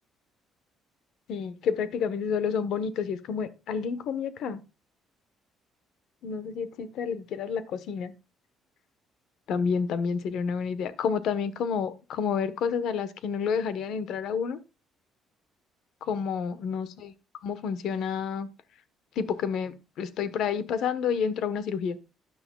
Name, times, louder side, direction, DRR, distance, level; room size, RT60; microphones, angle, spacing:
voice 1, 1.3-4.6 6.2-8.1 9.5-14.6 16.0-17.1 17.4-18.5 19.2-22.0, left 6 dB, 60° left, 14 dB, 1.1 m, -29 dB
13.0 x 9.8 x 2.3 m, 0.28 s
cardioid pair, 165°, 0 cm